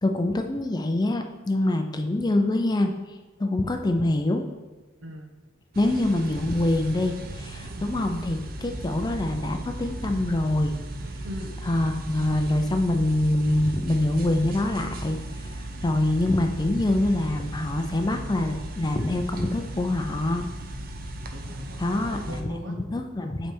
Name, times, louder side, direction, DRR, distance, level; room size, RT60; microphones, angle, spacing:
voice 1, 0.0-4.4 5.8-10.8 11.6-20.5 21.8-23.5, left 1 dB, 20° left, 5 dB, 0.4 m, -25 dB
voice 2, 5.0-5.3 7.8-8.0 11.2-11.6 21.3-22.8, equal, 75° right, 3 dB, 0.9 m, -40 dB
sound 1, 5.7-22.4, right 1 dB, 50° right, 0.6 m, -36 dB
8.0 x 3.3 x 4.5 m, 1.3 s
head